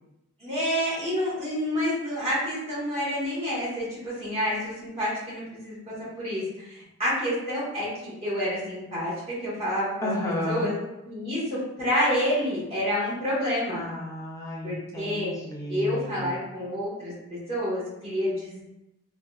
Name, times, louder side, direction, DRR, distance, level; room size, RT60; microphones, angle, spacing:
voice 1, 0.4-10.7 11.0-13.8 14.6-15.3 15.7-18.6, equal, 30° right, -10 dB, 1.4 m, -29 dB
voice 2, 10.0-10.7 13.7-16.3, left 1 dB, 15° left, -4 dB, 0.5 m, -32 dB
3.7 x 2.4 x 2.3 m, 0.92 s
head